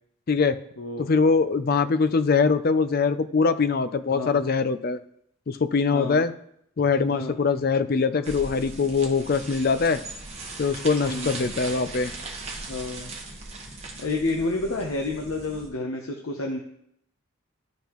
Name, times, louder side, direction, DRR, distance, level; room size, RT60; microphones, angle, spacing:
voice 1, 0.3-0.6 1.0-5.0 5.5-6.3 6.8-10.0 10.6-12.1, left 4 dB, 45° left, 12 dB, 0.4 m, -22 dB
voice 2, 4.1-4.4 5.9-6.3 7.1-7.4 11.0-11.3 12.7-13.1 14.0-16.6, left 2 dB, 85° left, 1 dB, 0.8 m, -30 dB
sound 1, 8.2-15.7, right 3 dB, 30° right, 1.2 m, -39 dB
12.5 x 5.3 x 3.0 m, 0.73 s
head